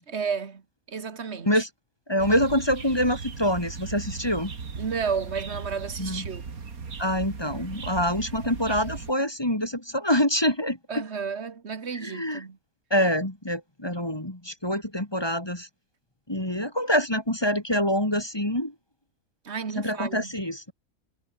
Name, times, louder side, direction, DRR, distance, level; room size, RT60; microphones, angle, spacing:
voice 1, 0.1-0.6 0.9-1.7 4.8-6.4 10.9-12.6 19.4-20.3, right 6 dB, 50° right, 1.9 m, -32 dB
voice 2, 2.1-4.5 6.0-6.2 7.0-11.0 12.0-12.4 12.9-15.7 16.3-18.7 19.8-20.7, equal, 15° left, 3.0 m, -26 dB
sound 1, 2.2-9.1, right 5 dB, 75° right, 2.6 m, -37 dB
omnidirectional pair, 1.5 m